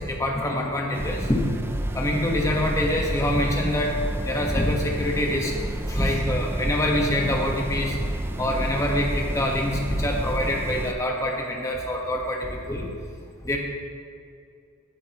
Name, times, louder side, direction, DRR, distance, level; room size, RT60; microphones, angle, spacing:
voice 1, 0.0-1.4 1.9-4.0 4.2-5.5 5.9-8.0 8.4-12.9 13.4-13.6, left 1 dB, 15° left, -1 dB, 1.3 m, -25 dB
sound 1, 0.9-10.9, right 1 dB, 10° right, 0.4 m, -30 dB
16.5 x 8.6 x 3.0 m, 2.3 s
head